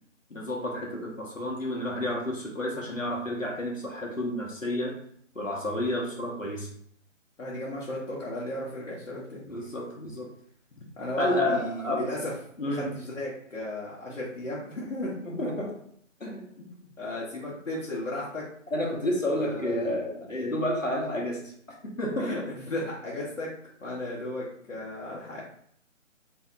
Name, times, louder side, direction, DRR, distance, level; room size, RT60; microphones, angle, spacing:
voice 1, 0.3-5.0 5.3-6.7 9.5-10.3 11.1-12.1 12.6-13.0 15.2-15.7 16.2-16.5 18.7-21.5 21.8-22.5, left 1 dB, 90° left, -2 dB, 1.3 m, -30 dB
voice 2, 7.4-9.5 11.0-12.3 12.6-15.1 16.6-18.5 19.4-19.9 22.2-23.5 23.8-25.4, left 1 dB, 70° left, -7 dB, 1.3 m, -35 dB
4.3 x 3.3 x 2.5 m, 0.64 s
figure-of-eight pair, 140°, 38 cm